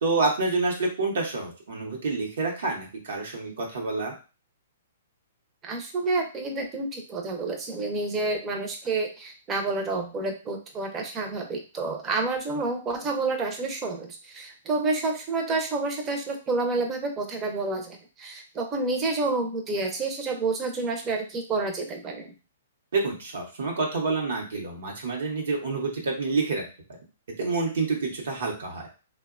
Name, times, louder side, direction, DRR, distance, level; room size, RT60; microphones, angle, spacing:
voice 1, 0.0-4.1 22.9-26.6 27.4-28.9, right 3 dB, 75° right, -1 dB, 0.8 m, -28 dB
voice 2, 5.6-22.3, right 3 dB, 20° right, 3 dB, 0.5 m, -29 dB
2.8 x 2.1 x 2.4 m, 0.33 s
hypercardioid pair, 145°, 0 cm